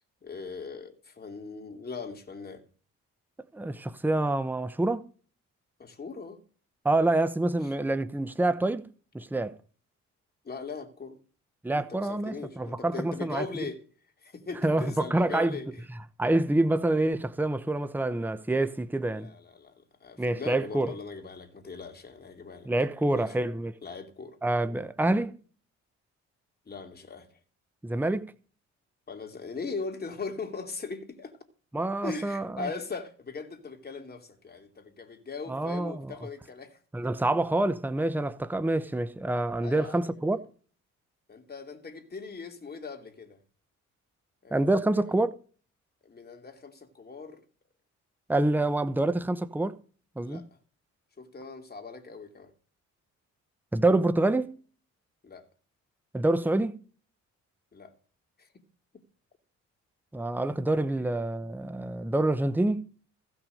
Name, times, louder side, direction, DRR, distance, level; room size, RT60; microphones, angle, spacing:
voice 1, 0.2-2.6 5.8-6.4 10.4-11.2 11.7-13.8 14.2-15.8 19.1-22.7 23.1-23.5 23.8-24.4 26.7-27.4 29.1-31.3 32.0-36.8 39.6-40.4 41.3-43.4 44.4-45.1 46.0-47.4 50.2-50.4 51.2-52.5 55.2-55.5 57.7-57.9 58.4-58.5 61.0-61.1, left 4 dB, 30° left, 2.9 m, -40 dB
voice 2, 3.5-5.1 6.8-8.9 9.1-9.6 11.6-13.5 14.6-15.6 16.2-19.3 20.2-20.9 22.7-23.7 24.4-25.3 27.8-28.3 31.7-32.7 35.5-36.1 36.9-40.4 44.5-45.3 48.3-49.8 50.2-50.4 53.7-54.6 56.1-56.8 60.1-62.9, right 2 dB, 5° right, 0.9 m, -27 dB
15.5 x 6.1 x 6.5 m
cardioid pair, 90°, 30 cm